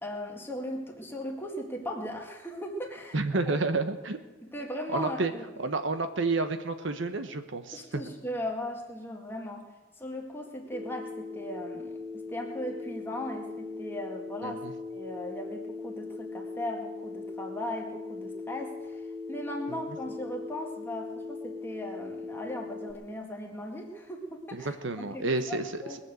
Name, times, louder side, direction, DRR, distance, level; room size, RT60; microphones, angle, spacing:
voice 1, 0.0-3.2 3.4-3.6 4.4-5.4 7.7-9.7 10.0-14.7 14.9-26.0, left 1 dB, 10° left, 1 dB, 1.9 m, -38 dB
voice 2, 3.1-4.2 4.9-5.3 5.6-7.8 14.4-14.7 19.7-19.8 24.5-25.6, right 3 dB, 60° right, 9 dB, 0.9 m, -30 dB
Telephone, 10.7-22.9, left 4 dB, 10° right, 1.0 m, -39 dB
20.5 x 7.2 x 7.8 m, 1.1 s
head